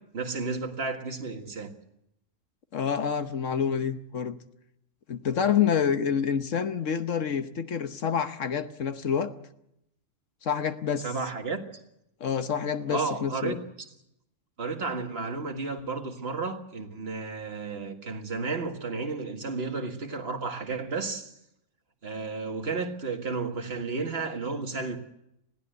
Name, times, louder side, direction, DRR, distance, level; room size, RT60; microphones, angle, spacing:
voice 1, 0.0-1.7 11.0-11.6 12.9-13.6 14.6-21.3 22.0-25.0, right 4 dB, 50° right, 2.1 m, -32 dB
voice 2, 2.7-4.4 5.1-9.3 10.4-11.1 12.2-13.6, left 7 dB, 70° left, 1.4 m, -27 dB
21.0 x 15.5 x 8.0 m
omnidirectional pair, 1.4 m